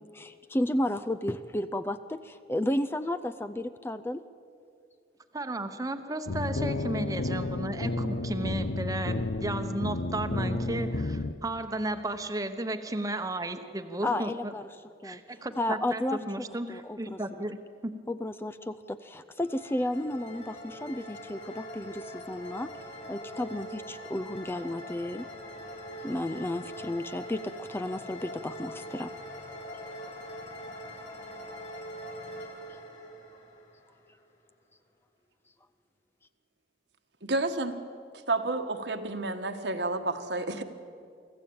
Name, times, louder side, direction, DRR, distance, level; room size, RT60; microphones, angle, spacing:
voice 1, 0.1-4.2 14.0-14.6 15.0-15.2 15.6-16.2 16.7-17.2 18.1-22.7 23.1-25.3 26.0-29.1, left 1 dB, 15° left, 10 dB, 0.4 m, -32 dB
voice 2, 5.3-14.5 15.0-17.9, right 1 dB, 20° right, 8 dB, 1.0 m, -34 dB
sound 1, 6.3-11.3, left 2 dB, 75° left, 0.7 m, -31 dB
sound 2, 19.4-34.2, equal, 40° left, 4.3 m, -43 dB
voice 3, 37.2-37.8 38.3-40.6, right 2 dB, 65° right, 7 dB, 1.4 m, -30 dB
24.5 x 14.5 x 8.7 m, 2.4 s
head